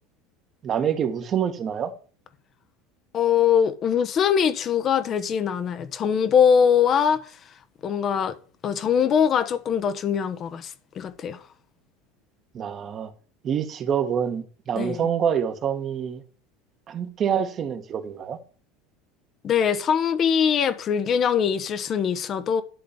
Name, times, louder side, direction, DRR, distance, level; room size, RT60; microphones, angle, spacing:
voice 1, 0.6-1.9 12.5-13.1 13.4-16.2 16.9-18.4, right 8 dB, 40° right, 1.5 m, -26 dB
voice 2, 3.1-7.2 7.8-8.4 8.6-11.4 14.7-15.0 19.4-22.6, left 7 dB, 40° left, 1.2 m, -22 dB
11.5 x 3.9 x 7.1 m
hypercardioid pair, 90°, 0 cm